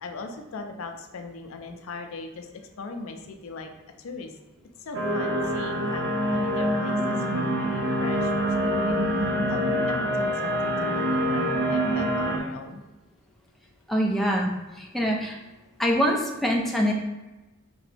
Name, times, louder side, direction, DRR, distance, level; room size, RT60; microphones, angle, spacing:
voice 1, 0.0-2.5 2.8-3.7 4.0-4.3 4.8-9.0 9.5-12.8, left 3 dB, 75° left, 5 dB, 0.4 m, -39 dB
sound 1, 4.9-12.4, equal, 55° right, 0.5 m, -25 dB
voice 2, 13.9-14.5 14.8-15.4 15.8-16.9, equal, ahead, -2 dB, 0.4 m, -24 dB
3.4 x 2.9 x 3.3 m, 1.1 s
head